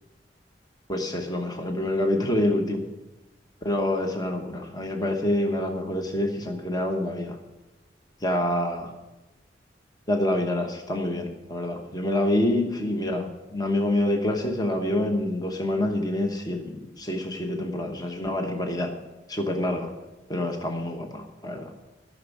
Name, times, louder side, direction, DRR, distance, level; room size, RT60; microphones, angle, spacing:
voice 1, 0.9-2.8 3.6-7.3 8.2-8.9 10.1-18.9 19.3-19.9 20.3-21.7, left 1 dB, 20° left, 3 dB, 1.0 m, -27 dB
13.5 x 6.2 x 8.4 m, 1.1 s
head